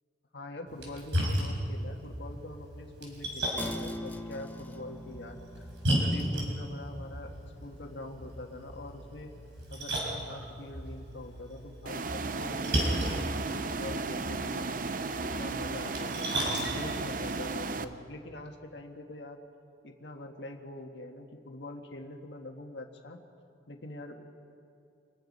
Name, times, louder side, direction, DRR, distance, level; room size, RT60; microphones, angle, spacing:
voice 1, 0.3-5.4 5.9-9.3 9.7-14.7 15.4-19.4 19.8-23.2 23.7-24.3, left 1 dB, 90° left, 3 dB, 1.5 m, -44 dB
Splash splatter, 0.7-17.8, equal, 85° right, 5.2 m, -35 dB
sound 1, 3.6-13.3, left 1 dB, 10° left, 0.9 m, -46 dB
sound 2, 11.9-17.9, right 3 dB, 50° right, 0.7 m, -35 dB
26.5 x 20.0 x 5.4 m, 2.5 s
head